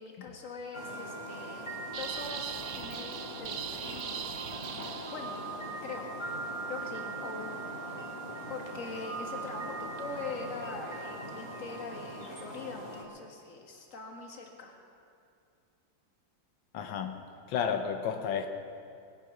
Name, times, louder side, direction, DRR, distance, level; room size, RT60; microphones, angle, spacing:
voice 1, 0.0-1.7 2.0-4.2 5.1-5.4 5.8-6.1 6.7-8.1 8.5-14.7, left 4 dB, 45° left, 2 dB, 2.0 m, -42 dB
sound 1, 0.7-13.0, right 2 dB, 20° left, 1.8 m, -40 dB
sound 2, 1.9-5.6, right 8 dB, 85° right, 0.5 m, -40 dB
voice 2, 16.7-17.2 17.5-18.5, left 7 dB, 90° left, 6 dB, 1.6 m, -31 dB
21.5 x 9.5 x 5.9 m, 2.5 s
omnidirectional pair, 2.0 m